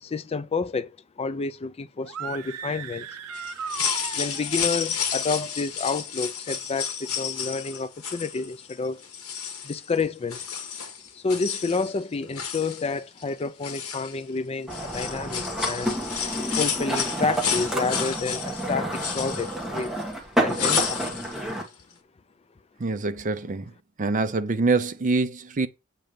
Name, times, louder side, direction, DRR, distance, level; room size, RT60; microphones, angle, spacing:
voice 1, 0.0-3.1 4.1-9.0 9.6-10.5 11.1-15.9 16.5-19.9 20.4-21.1, left 4 dB, 25° left, 0.4 m, -29 dB
sound 1, 2.0-4.6, right 6 dB, 85° right, 0.5 m, -36 dB
sound 2, 3.3-8.7 9.0-10.0 10.3-12.0 12.2-13.3 13.6-14.4 14.7-20.1 20.5-21.4 21.7-21.8, left 7 dB, 70° left, 1.1 m, -31 dB
sound 3, 14.7-21.6, right 1 dB, ahead, 1.5 m, -29 dB
voice 2, 22.8-23.7 24.0-25.7, right 3 dB, 35° right, 0.5 m, -25 dB
7.6 x 2.9 x 5.1 m
head